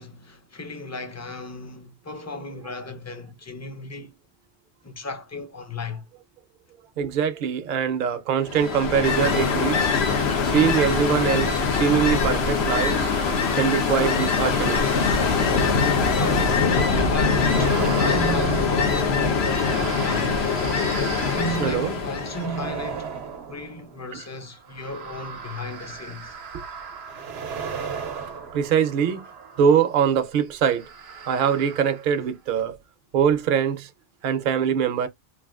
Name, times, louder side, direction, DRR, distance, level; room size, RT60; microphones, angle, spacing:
voice 1, 0.0-4.2 4.8-6.1 16.0-20.6 21.3-23.1 23.5-26.4, left 1 dB, 25° left, 0.4 m, -35 dB
voice 2, 7.0-9.9 10.4-13.1 13.6-14.9 21.6-21.9 24.1-24.2 28.5-29.2 29.6-30.9 31.3-32.8 33.1-33.9 34.2-35.1, right 8 dB, 60° right, 0.7 m, -23 dB
Ocean, 8.5-22.5, left 5 dB, 90° left, 1.1 m, -23 dB
sound 1, 9.0-18.0, left 5 dB, 70° left, 0.8 m, -31 dB
sound 2, 12.7-16.4 17.1-29.9 30.7-32.3 32.6-32.7, right 5 dB, 85° right, 0.9 m, -37 dB
3.3 x 2.5 x 2.4 m
omnidirectional pair, 1.0 m